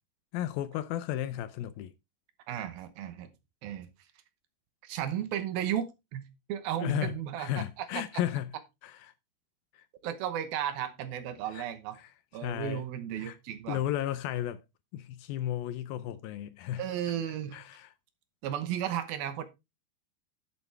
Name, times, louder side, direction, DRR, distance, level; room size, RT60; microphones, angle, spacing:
voice 1, 0.3-1.9 6.8-8.5 8.8-9.1 11.5-11.7 12.0-12.1 12.4-12.9 13.2-13.4 13.7-14.6 14.9-16.8 17.5-17.9, left 12 dB, 80° left, 2.3 m, -34 dB
voice 2, 2.5-3.3 3.6-3.9 4.8-6.2 6.5-8.0 10.0-12.0 12.3-13.8 16.8-17.6 18.4-19.4, right 10 dB, 75° right, 2.7 m, -34 dB
11.0 x 8.0 x 3.3 m
omnidirectional pair, 4.6 m